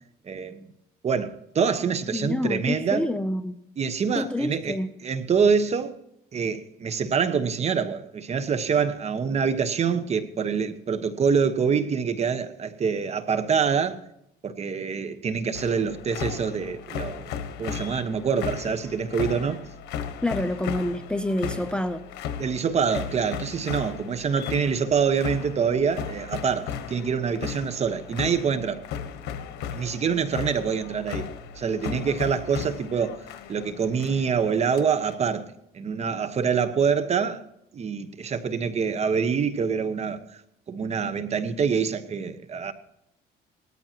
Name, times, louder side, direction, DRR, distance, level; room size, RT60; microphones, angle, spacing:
voice 1, 0.3-0.7 1.0-3.1 3.8-4.8 5.0-6.0 6.3-14.0 14.4-19.6 22.4-28.8 29.7-31.3 31.6-33.2 33.5-37.4 37.7-40.2 40.7-42.7, right 6 dB, 40° right, 1.2 m, -25 dB
voice 2, 2.1-3.6 4.2-4.9 20.2-22.0, left 1 dB, 5° left, 0.6 m, -27 dB
sound 1, 15.5-35.2, left 8 dB, 85° left, 1.3 m, -36 dB
18.5 x 13.5 x 2.9 m
cardioid pair, 110°, 17 cm